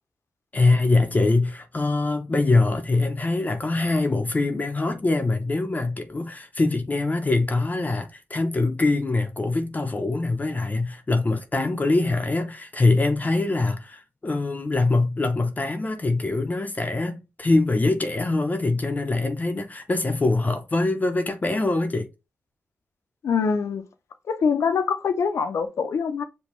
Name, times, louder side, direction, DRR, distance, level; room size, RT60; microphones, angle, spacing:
voice 1, 0.5-22.1, left 2 dB, 30° left, 0.7 m, -23 dB
voice 2, 23.2-23.8 24.3-26.2, left 6 dB, 70° left, 0.7 m, -24 dB
5.3 x 2.2 x 3.0 m
supercardioid pair, 50°, 5 cm